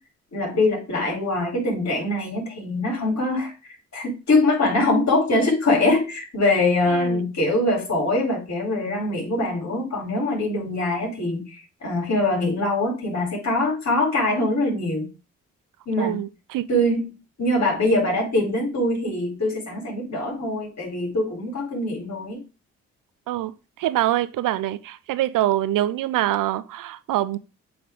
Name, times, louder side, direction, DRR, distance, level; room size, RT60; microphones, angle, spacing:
voice 1, 0.3-3.5 3.9-15.1 15.9-16.2 16.7-22.4, left 2 dB, 50° left, 4.2 m, -23 dB
voice 2, 6.9-7.2 16.0-16.6 23.3-27.4, right 14 dB, 70° right, 0.7 m, -25 dB
7.2 x 3.6 x 4.6 m
hypercardioid pair, 50°, 34 cm